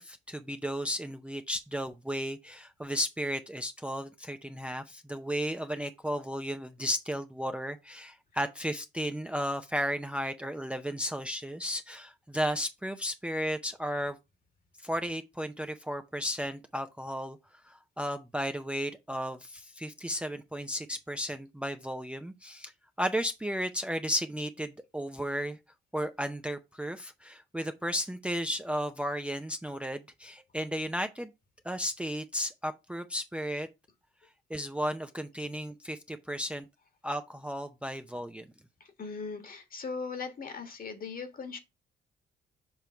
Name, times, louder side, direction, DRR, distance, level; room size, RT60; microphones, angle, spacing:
voice 1, 0.0-14.2 14.8-22.7 23.0-25.6 25.9-31.3 31.6-33.7 34.5-36.7 37.0-38.5, equal, 5° right, 0.5 m, -34 dB
voice 2, 38.8-41.6, left 4 dB, 45° left, 1.6 m, -39 dB
7.0 x 3.0 x 5.6 m
cardioid pair, 90°, 20 cm